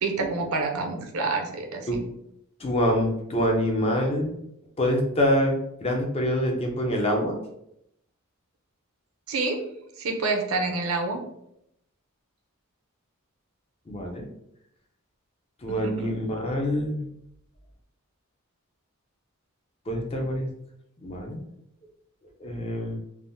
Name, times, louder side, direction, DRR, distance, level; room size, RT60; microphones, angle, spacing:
voice 1, 0.0-2.0 9.3-9.6 10.0-11.2 15.7-16.1, right 3 dB, 75° right, 3 dB, 0.5 m, -28 dB
voice 2, 2.6-4.4 4.8-7.4 13.9-14.3 15.6-17.0 19.9-20.5 21.0-21.4 22.4-23.0, equal, 25° left, 2 dB, 0.4 m, -25 dB
3.4 x 2.0 x 2.6 m, 0.77 s
head